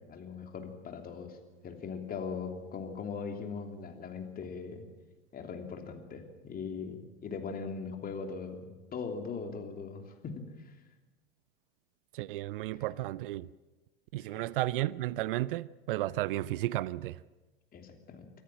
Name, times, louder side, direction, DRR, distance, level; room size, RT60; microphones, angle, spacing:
voice 1, 0.0-1.4 1.6-4.8 5.3-10.7 14.2-14.4 17.7-18.3, left 5 dB, 30° left, 3.1 m, -40 dB
voice 2, 12.1-13.5 14.1-17.2, right 16 dB, 60° right, 0.6 m, -33 dB
24.5 x 14.0 x 7.5 m
hypercardioid pair, 90°, 31 cm